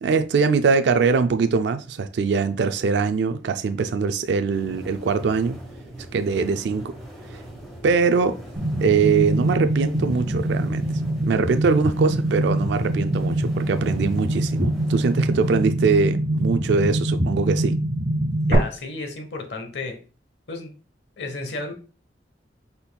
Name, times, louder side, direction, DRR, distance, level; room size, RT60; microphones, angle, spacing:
voice 1, 0.0-5.6 6.1-6.9 7.3-7.4 7.8-8.4 8.8-10.9 11.2-17.7, right 5 dB, 70° right, 0.3 m, -22 dB
sound 1, 4.5-15.6, right 1 dB, ahead, 1.5 m, -41 dB
sound 2, 8.6-18.6, right 1 dB, 50° right, 1.4 m, -24 dB
voice 2, 18.5-20.0 20.5-20.7 21.2-21.7, left 2 dB, 75° left, 0.9 m, -32 dB
5.3 x 4.2 x 2.2 m
head